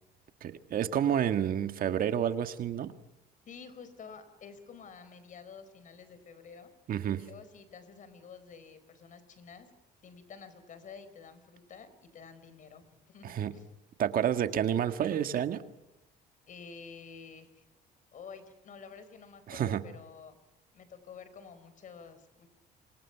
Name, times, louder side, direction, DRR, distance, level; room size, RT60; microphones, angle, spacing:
voice 1, 0.4-2.9 6.9-7.2 13.2-13.5 14.0-15.6 19.5-19.8, right 9 dB, 55° right, 9 dB, 1.8 m, -29 dB
voice 2, 3.4-6.7 7.2-9.7 10.0-13.7 16.5-17.6 18.1-20.4 20.7-22.5, left 6 dB, 50° left, 12 dB, 4.6 m, -50 dB
29.5 x 26.0 x 5.9 m, 0.89 s
cardioid pair, 110°, 17 cm